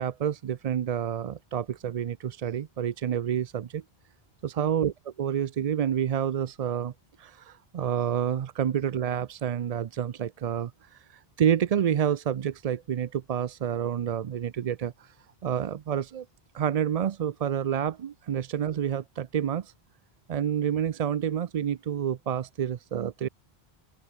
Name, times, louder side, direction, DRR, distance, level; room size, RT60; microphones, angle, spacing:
voice 1, 0.0-3.8 4.4-4.9 5.2-6.9 7.2-11.0 11.4-15.1 15.4-16.3 16.5-19.7 20.3-23.3, right 9 dB, 50° right, 0.4 m, -28 dB
open air
omnidirectional pair, 1.1 m